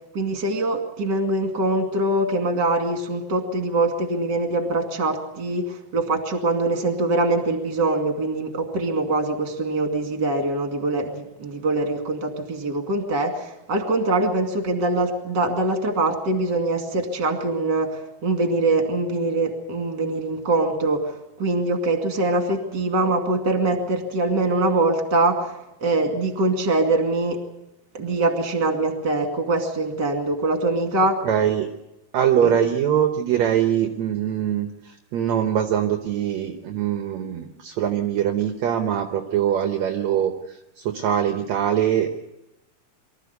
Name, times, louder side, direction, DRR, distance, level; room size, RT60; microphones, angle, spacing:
voice 1, 0.1-27.4 27.9-31.2 32.4-32.5, right 2 dB, 35° right, 4 dB, 2.5 m, -23 dB
voice 2, 31.2-31.7 32.1-42.2, right 9 dB, 65° right, 6 dB, 1.9 m, -23 dB
24.0 x 14.0 x 8.2 m, 0.93 s
omnidirectional pair, 4.3 m